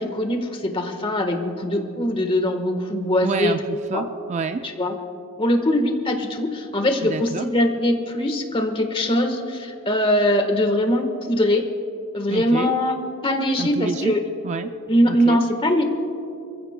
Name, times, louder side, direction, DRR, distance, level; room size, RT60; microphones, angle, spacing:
voice 1, 0.0-3.6 3.9-4.0 4.6-4.9 5.4-11.7 12.1-13.0 13.2-14.2 14.9-15.8, left 1 dB, 25° left, 5 dB, 1.3 m, -22 dB
voice 2, 3.2-4.7 7.0-7.5 12.3-12.7 13.6-14.1 14.4-14.8 15.1-15.4, right 4 dB, 30° right, 9 dB, 0.3 m, -28 dB
28.5 x 15.5 x 2.2 m, 2.6 s
head